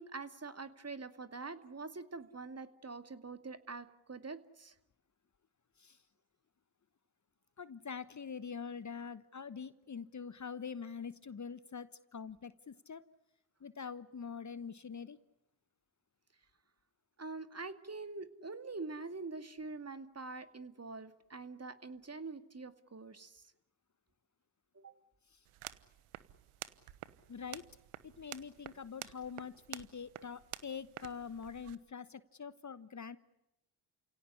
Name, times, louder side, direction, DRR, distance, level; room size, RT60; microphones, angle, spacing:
voice 1, 0.0-4.7 17.2-23.5 24.7-24.9, right 3 dB, 30° right, 10 dB, 2.4 m, -45 dB
voice 2, 7.6-13.0 13.6-15.2 27.3-27.6 28.0-33.2, left 6 dB, 35° left, 15 dB, 1.2 m, -44 dB
sound 1, 25.4-31.8, right 14 dB, 80° right, 1.2 m, -50 dB
29.5 x 17.5 x 9.9 m, 0.91 s
hypercardioid pair, 45°, 50 cm